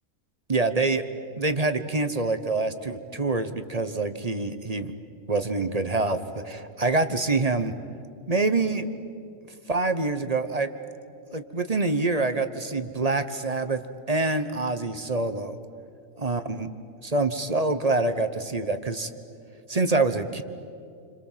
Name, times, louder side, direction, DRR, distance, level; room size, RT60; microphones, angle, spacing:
voice 1, 0.5-1.0 1.4-4.9 5.3-7.7 8.3-8.9 9.7-10.7 11.3-13.8 14.1-15.6 16.2-16.7 17.0-19.1 19.7-20.4, right 3 dB, 30° right, 10 dB, 1.1 m, -26 dB
29.0 x 26.5 x 7.5 m, 2.4 s
omnidirectional pair, 1.4 m